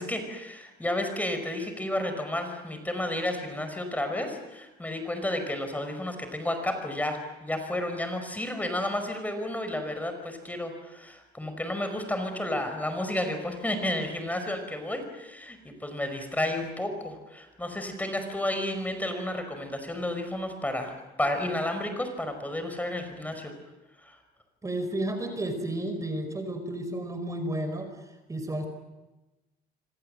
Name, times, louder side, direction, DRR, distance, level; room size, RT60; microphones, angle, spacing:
voice 1, 0.0-23.5 24.0-24.2, left 1 dB, 10° left, 6 dB, 5.3 m, -32 dB
voice 2, 24.6-27.9 28.3-28.7, right 1 dB, 20° right, 7 dB, 5.2 m, -32 dB
27.5 x 26.0 x 7.9 m, 1.1 s
cardioid pair, 110°, 17 cm